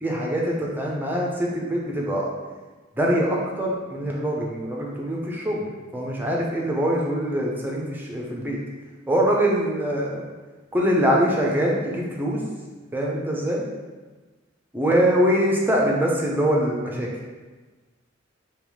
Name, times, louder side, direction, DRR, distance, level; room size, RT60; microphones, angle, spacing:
voice 1, 0.0-2.3 2.9-5.7 5.9-8.6 9.1-10.3 10.7-12.4 12.9-13.6 14.7-17.1, equal, 10° right, -2 dB, 0.7 m, -23 dB
3.5 x 3.1 x 4.9 m, 1.3 s
head